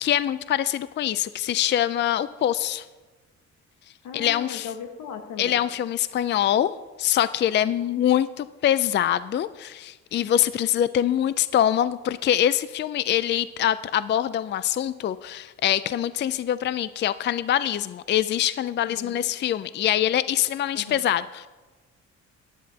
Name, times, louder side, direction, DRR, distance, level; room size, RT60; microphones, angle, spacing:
voice 1, 0.0-2.8 4.1-4.7 5.4-6.7 7.0-21.5, left 11 dB, 40° left, 15 dB, 0.4 m, -24 dB
voice 2, 4.0-5.6 18.9-19.2 20.7-21.0, left 7 dB, 85° left, 5 dB, 1.4 m, -38 dB
15.5 x 10.5 x 2.8 m, 1.2 s
cardioid pair, 90°, 30 cm